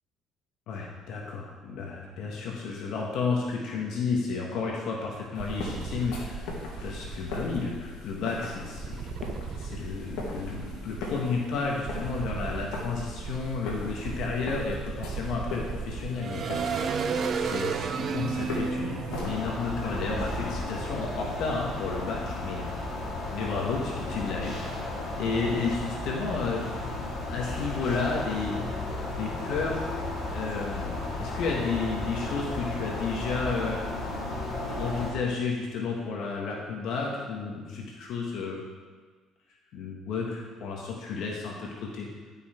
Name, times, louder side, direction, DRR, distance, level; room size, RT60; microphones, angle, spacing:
voice 1, 0.7-6.5 6.8-9.1 9.6-16.8 17.3-22.8 23.3-24.9 25.2-26.6 27.3-28.6 29.1-29.9 30.3-33.8 34.7-38.6 39.7-42.1, left 4 dB, 70° left, -2 dB, 1.4 m, -32 dB
sound 1, 5.3-19.3, left 2 dB, 90° left, 1.8 m, -40 dB
sound 2, 5.4-7.7 8.8-11.3 11.8-20.6, right 5 dB, 45° right, 0.6 m, -34 dB
sound 3, 19.1-35.1, left 2 dB, 45° left, 2.1 m, -34 dB
11.0 x 5.6 x 4.4 m, 1.4 s
cardioid pair, 110°, 0 cm